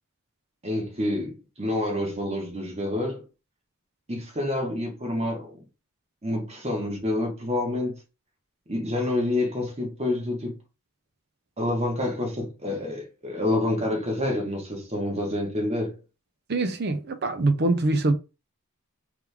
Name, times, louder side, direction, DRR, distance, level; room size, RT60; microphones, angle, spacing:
voice 1, 0.6-3.2 4.1-5.5 6.2-7.9 8.7-10.5 11.6-16.0, left 1 dB, 30° right, 1.3 m, -28 dB
voice 2, 16.5-18.1, right 2 dB, 50° right, 0.6 m, -24 dB
3.4 x 3.2 x 3.4 m
head